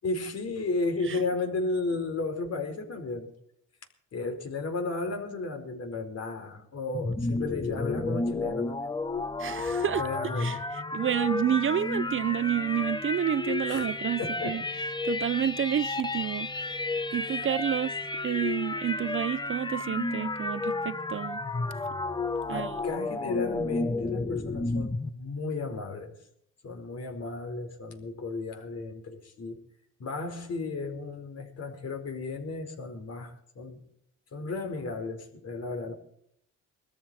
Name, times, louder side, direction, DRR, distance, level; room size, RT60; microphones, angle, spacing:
voice 1, 0.0-3.4 4.1-8.8 10.0-10.6 13.7-13.9 14.2-14.6 17.1-17.5 22.5-26.2 26.6-29.6 30.0-33.8 34.3-35.9, left 3 dB, 55° left, 4.7 m, -34 dB
sound 1, 6.9-25.1, left 3 dB, 15° left, 1.1 m, -32 dB
voice 2, 9.4-10.1 10.4-18.0 18.2-21.4 22.5-22.8, right 10 dB, 45° right, 0.6 m, -30 dB
22.5 x 13.5 x 4.3 m
cardioid pair, 90°, 30 cm